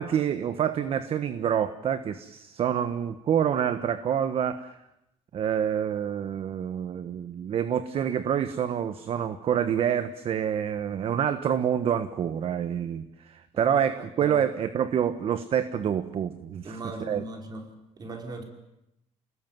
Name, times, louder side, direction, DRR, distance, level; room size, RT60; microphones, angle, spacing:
voice 1, 0.0-4.8 5.3-17.2, right 9 dB, 50° right, 11 dB, 1.3 m, -27 dB
voice 2, 16.6-17.6 18.0-18.4, right 2 dB, 30° right, 4 dB, 5.0 m, -38 dB
29.5 x 19.5 x 9.3 m, 0.86 s
cardioid pair, 145°, 13 cm